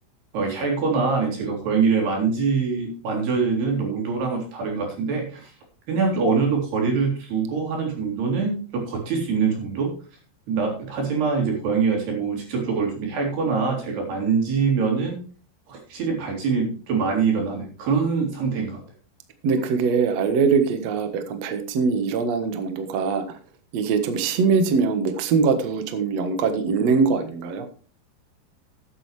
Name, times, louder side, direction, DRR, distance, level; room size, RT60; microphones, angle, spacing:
voice 1, 0.3-5.5 5.9-9.9 10.5-15.2 15.7-18.8, right 5 dB, 60° right, 0 dB, 5.5 m, -24 dB
voice 2, 19.4-23.2 23.7-27.6, right 5 dB, 85° right, 7 dB, 1.4 m, -22 dB
13.5 x 10.0 x 3.3 m, 0.39 s
omnidirectional pair, 5.4 m